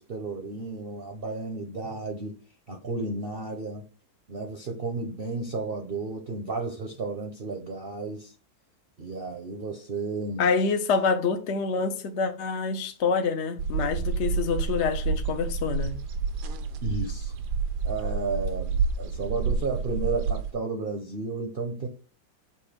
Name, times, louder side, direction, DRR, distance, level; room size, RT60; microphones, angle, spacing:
voice 1, 0.0-2.4 2.7-3.8 4.3-8.3 9.0-10.5 16.8-17.3 17.8-21.9, right 3 dB, 40° right, 0.8 m, -33 dB
voice 2, 10.4-16.0, left 5 dB, 55° left, 0.8 m, -26 dB
sound 1, 13.6-20.5, right 5 dB, 70° right, 1.2 m, -29 dB
7.0 x 2.6 x 5.1 m
omnidirectional pair, 2.0 m